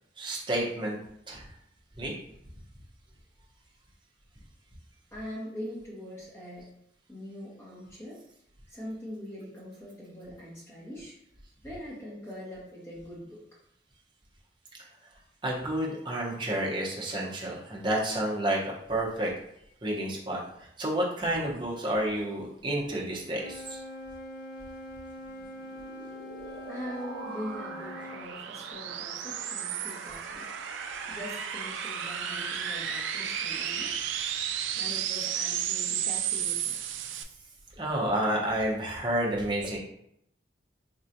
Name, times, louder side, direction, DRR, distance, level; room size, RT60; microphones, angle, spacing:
voice 1, 0.2-1.0 1.3-1.5 2.0-2.1 15.4-19.3 19.8-23.8 37.7-39.8, right 1 dB, 25° right, -3 dB, 0.8 m, -30 dB
voice 2, 5.1-6.7 7.1-8.2 8.7-11.2 11.6-13.4 26.7-30.5 31.1-33.9 34.7-36.7, equal, 15° left, -7 dB, 1.3 m, -42 dB
Wind instrument woodwind instrument, 23.3-28.3, left 1 dB, 55° left, 0.5 m, -43 dB
sound 1, 25.4-37.2, right 8 dB, 90° right, 0.4 m, -34 dB
4.4 x 3.0 x 2.6 m, 0.76 s
head